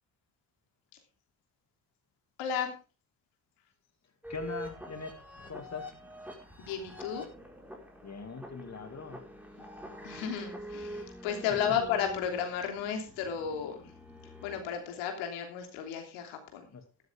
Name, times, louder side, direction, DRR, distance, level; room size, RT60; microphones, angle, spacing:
voice 1, 2.4-2.7 6.6-7.3 10.0-13.7 14.4-16.7, left 8 dB, 75° left, 4 dB, 3.1 m, -33 dB
sound 1, 4.2-15.2, equal, 5° right, 4.7 m, -46 dB
voice 2, 4.3-5.2 5.5-5.9 8.0-9.3 11.7-11.8 16.7-16.9, left 4 dB, 35° left, 7 dB, 2.5 m, -41 dB
13.0 x 12.5 x 3.6 m, 0.31 s
hypercardioid pair, 50°, 46 cm